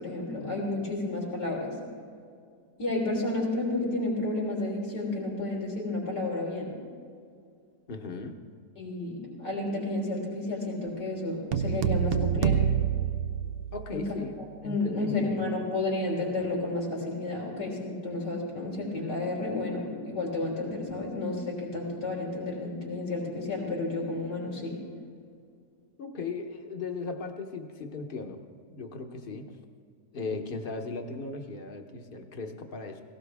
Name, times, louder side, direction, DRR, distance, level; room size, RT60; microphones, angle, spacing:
voice 1, 0.0-1.7 2.8-6.7 8.8-12.7 13.9-14.0 14.6-24.8, left 2 dB, 85° left, -3 dB, 4.0 m, -31 dB
voice 2, 7.9-8.4 13.7-15.5 26.0-28.4 28.7-29.5 30.1-33.0, left 4 dB, 40° left, 5 dB, 1.1 m, -37 dB
sound 1, 11.5-14.1, right 8 dB, 75° right, 0.5 m, -27 dB
17.5 x 17.0 x 3.5 m, 2.2 s
omnidirectional pair, 1.8 m